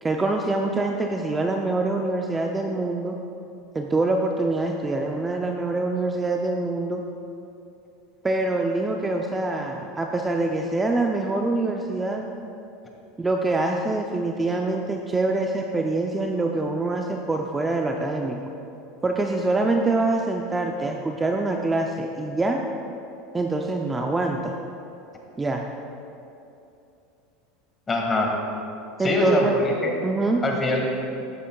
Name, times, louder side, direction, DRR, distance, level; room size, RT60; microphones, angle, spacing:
voice 1, 0.0-3.2 3.7-7.0 8.2-12.3 13.2-18.4 19.0-22.6 23.3-24.6 25.4-25.6 29.0-29.5 30.0-30.4, right 2 dB, 15° right, 2 dB, 0.6 m, -25 dB
voice 2, 27.9-28.3 29.0-30.0 30.4-30.9, left 2 dB, 25° left, 0 dB, 1.9 m, -23 dB
13.5 x 8.9 x 2.4 m, 2.7 s
hypercardioid pair, 100°, 0 cm